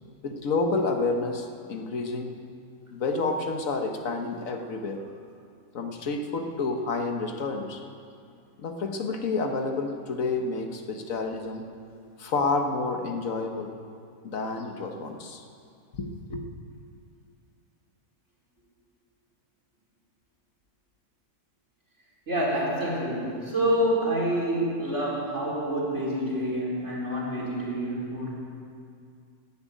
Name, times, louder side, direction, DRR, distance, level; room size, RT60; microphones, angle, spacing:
voice 1, 0.2-2.4 2.9-5.0 5.7-7.8 8.6-11.6 12.2-13.7 14.2-15.4 15.9-16.4, left 3 dB, 75° left, 4 dB, 1.6 m, -29 dB
voice 2, 22.3-28.3, equal, 55° right, -6 dB, 4.6 m, -27 dB
12.0 x 11.0 x 9.2 m, 2.3 s
omnidirectional pair, 1.4 m